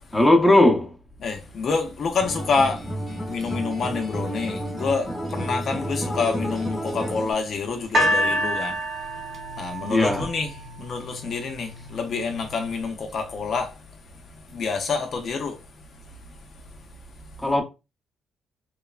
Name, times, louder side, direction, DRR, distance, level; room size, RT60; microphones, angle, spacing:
voice 1, 0.1-0.9 9.9-10.3 17.4-17.6, left 1 dB, 10° left, 0.7 m, -17 dB
voice 2, 1.2-2.8 3.3-8.8 9.6-10.5 10.8-13.7 14.5-15.6, left 4 dB, 60° left, 0.5 m, -27 dB
Acoustic guitar, 2.2-7.3, equal, 25° left, 1.1 m, -31 dB
sound 1, 7.9-11.1 11.9-12.0, equal, 55° right, 1.0 m, -26 dB
3.0 x 2.0 x 2.3 m
cardioid pair, 90°, 0 cm